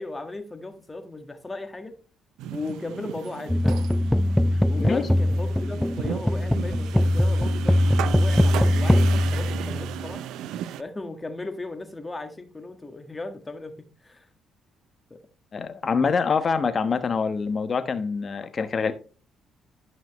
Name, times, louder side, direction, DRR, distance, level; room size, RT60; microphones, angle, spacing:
voice 1, 0.0-2.0 2.5-3.8 4.7-10.2 10.8-13.8 14.0-14.3 15.1-15.2, left 2 dB, 20° left, 1.6 m, -36 dB
sound 1, 2.4-10.8, right 11 dB, 75° right, 0.4 m, -35 dB
sound 2, 3.5-10.1, left 1 dB, 5° left, 0.4 m, -22 dB
voice 2, 15.5-18.9, left 5 dB, 45° left, 1.1 m, -25 dB
12.0 x 5.5 x 3.1 m
hypercardioid pair, 55°, 0 cm